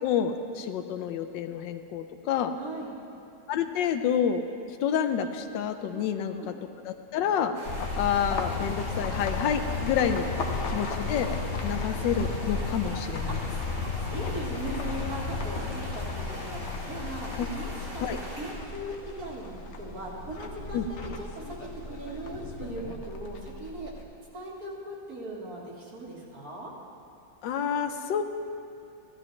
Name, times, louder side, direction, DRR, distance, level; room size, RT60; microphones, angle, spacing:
voice 1, 0.0-2.5 3.5-4.4 4.8-6.3 6.9-7.6 7.9-10.2 10.7-11.4 11.6-13.3 17.4-17.5 18.0-18.2 20.7-20.8 27.4-28.2, left 8 dB, 85° left, 8 dB, 1.3 m, -28 dB
voice 2, 2.6-3.0 5.9-6.5 10.2-10.7 13.3-13.8 14.1-23.9 24.3-26.7, right 1 dB, 55° right, -3 dB, 2.2 m, -39 dB
sound 1, 7.5-18.5, equal, 85° right, 3.4 m, -42 dB
sound 2, 7.7-24.0, left 3 dB, 50° left, 0.9 m, -34 dB
15.0 x 13.0 x 3.2 m, 2.6 s
omnidirectional pair, 1.9 m